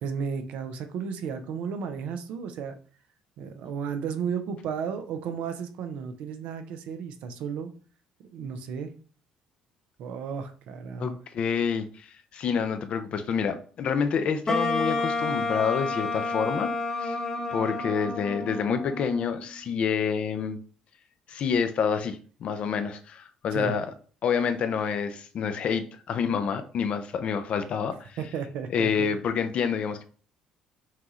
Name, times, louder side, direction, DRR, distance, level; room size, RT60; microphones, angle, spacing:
voice 1, 0.0-2.7 3.4-7.7 8.2-8.9 10.0-11.2 23.5-23.8 28.2-29.1, right 6 dB, 75° right, 7 dB, 0.7 m, -33 dB
voice 2, 11.0-16.7 17.0-17.2 17.5-20.6 21.3-23.9 24.2-28.2 28.7-30.0, left 6 dB, 60° left, 9 dB, 0.6 m, -28 dB
Wind instrument woodwind instrument, 14.5-19.5, left 3 dB, 30° left, 1.1 m, -30 dB
5.7 x 2.4 x 3.1 m, 0.41 s
supercardioid pair, 75°, 2 cm